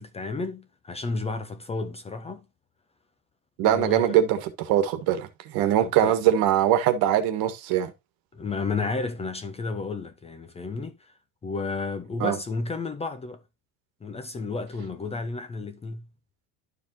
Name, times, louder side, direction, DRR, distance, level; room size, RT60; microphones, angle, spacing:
voice 1, 0.0-2.4 3.6-4.2 5.8-6.2 8.3-11.1 11.4-13.4 14.0-16.0, left 4 dB, 15° left, 0.6 m, -32 dB
voice 2, 3.6-7.9 12.2-12.3, right 11 dB, 60° right, 1.5 m, -22 dB
12.0 x 4.7 x 2.8 m
cardioid pair, 145°, 42 cm